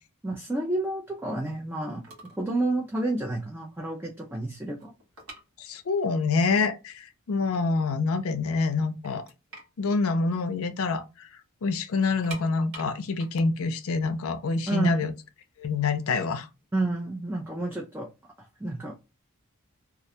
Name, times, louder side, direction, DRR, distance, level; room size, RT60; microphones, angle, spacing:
voice 1, 0.2-4.9 14.7-15.0 16.7-18.1 18.4-18.9, right 2 dB, 10° right, 0.3 m, -30 dB
sound 1, 2.0-2.5 2.8-3.0 3.5-3.6 3.9-6.1 6.4-6.5 7.2-7.3 7.6-8.3 8.7-8.8 9.0-11.0 11.3-11.4 12.0-14.9 15.6-17.4, right 2 dB, 75° right, 1.1 m, -47 dB
voice 2, 5.6-9.2 9.8-11.3 11.6-15.1 15.6-16.5, left 4 dB, 70° left, 0.5 m, -26 dB
2.4 x 2.2 x 2.7 m
head